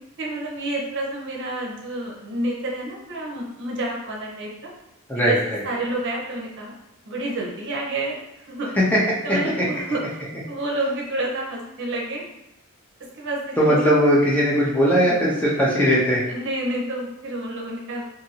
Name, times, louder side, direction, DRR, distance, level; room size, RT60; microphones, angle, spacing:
voice 1, 0.2-4.5 5.2-5.4 5.6-6.7 7.1-8.2 8.5-8.7 9.2-10.0 10.5-12.2 13.1-13.8 16.3-18.0, right 1 dB, 55° right, -2 dB, 0.7 m, -29 dB
voice 2, 5.1-5.6 9.3-9.6 13.6-16.2, equal, 5° left, -6 dB, 0.5 m, -19 dB
2.6 x 2.6 x 2.8 m, 0.90 s
head